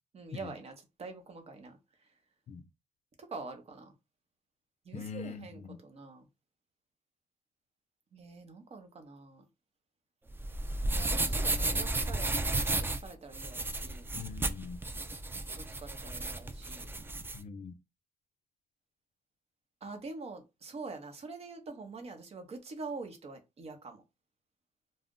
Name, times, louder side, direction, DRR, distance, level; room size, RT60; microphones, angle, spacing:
voice 1, 0.1-1.8 3.3-3.9 4.8-6.3 8.1-9.4 10.9-14.1 15.5-16.9 19.8-24.0, right 3 dB, 45° right, 0.8 m, -45 dB
voice 2, 4.9-5.8 14.1-14.8 17.3-17.8, left 5 dB, 55° left, 0.4 m, -43 dB
sound 1, 10.3-17.4, right 2 dB, 15° right, 0.3 m, -33 dB
2.4 x 2.0 x 3.6 m
cardioid pair, 100°, 14 cm